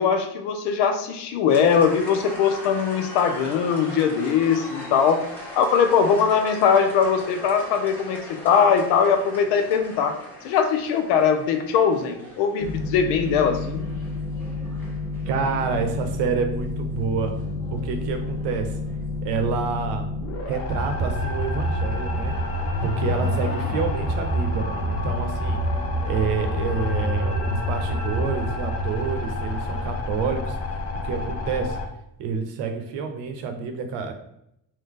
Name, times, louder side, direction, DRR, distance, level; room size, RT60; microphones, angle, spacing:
voice 1, 0.0-5.2 5.5-10.2 10.4-13.9, left 6 dB, 85° left, 7 dB, 0.7 m, -21 dB
sound 1, 1.5-19.2, left 1 dB, 5° left, 1.0 m, -41 dB
sound 2, 12.6-31.9, left 2 dB, 35° left, 0.6 m, -31 dB
voice 2, 15.3-17.3 17.7-18.8 19.2-20.1 20.5-22.4 22.8-25.6 26.0-30.6 31.0-31.8 32.2-34.1, right 5 dB, 75° right, 6 dB, 0.8 m, -28 dB
sound 3, 20.7-31.5, equal, 55° left, 1.0 m, -28 dB
3.7 x 2.7 x 3.6 m, 0.77 s
cardioid pair, 120°, 42 cm